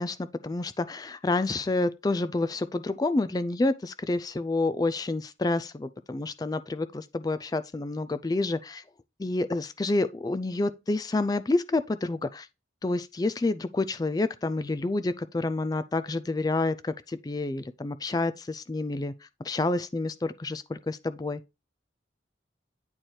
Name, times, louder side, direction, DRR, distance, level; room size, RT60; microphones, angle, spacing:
voice 1, 0.0-8.8 9.2-12.5 12.8-19.1 19.4-21.4, left 2 dB, 20° left, 0.3 m, -28 dB
9.0 x 4.4 x 3.2 m
head